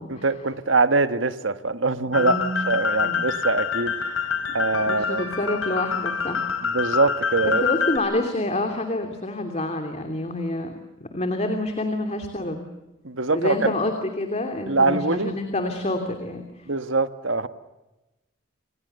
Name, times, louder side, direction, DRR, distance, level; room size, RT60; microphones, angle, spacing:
voice 1, 0.1-3.9 4.5-5.2 6.7-7.6 13.0-13.7 14.7-15.3 16.7-17.5, right 3 dB, 70° right, 10 dB, 1.6 m, -23 dB
sound 1, 2.1-8.0, left 6 dB, 85° left, 5.1 m, -26 dB
voice 2, 2.1-2.6 3.0-3.2 4.9-6.4 7.4-12.7 13.3-16.7, left 1 dB, 35° left, 5 dB, 2.8 m, -28 dB
28.5 x 26.5 x 6.8 m, 1.0 s
head